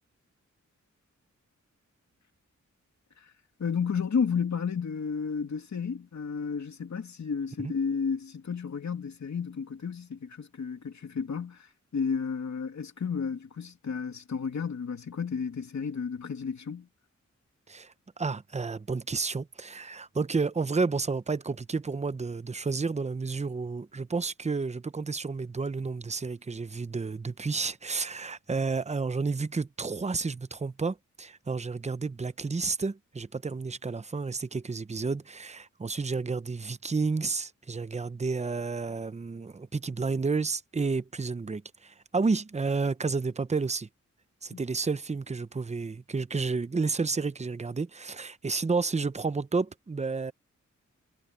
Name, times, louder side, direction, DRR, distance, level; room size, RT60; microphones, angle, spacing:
voice 1, 3.6-16.9 44.5-44.6, left 6 dB, 65° left, 2.7 m, -32 dB
voice 2, 17.7-43.9 44.4-50.3, right 4 dB, 20° right, 0.7 m, -31 dB
wide cardioid pair, 100°, 30 cm